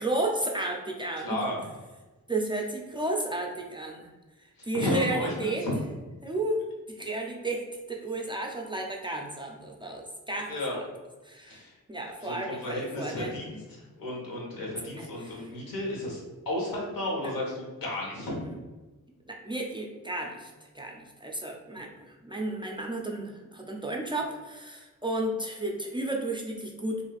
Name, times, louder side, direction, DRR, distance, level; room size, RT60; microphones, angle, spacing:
voice 1, 0.0-1.4 2.3-4.1 4.4-5.6 6.2-10.8 11.2-11.6 11.9-13.4 15.0-15.5 17.2-17.3 18.3-18.6 19.3-27.1, right 2 dB, 15° right, 0 dB, 0.3 m, -33 dB
voice 2, 1.2-1.6 4.6-5.7 10.5-10.8 11.5-11.7 12.2-16.2 16.5-18.4, left 1 dB, 85° left, -3 dB, 1.0 m, -33 dB
3.2 x 2.5 x 2.3 m, 1.2 s
cardioid pair, 90°, 33 cm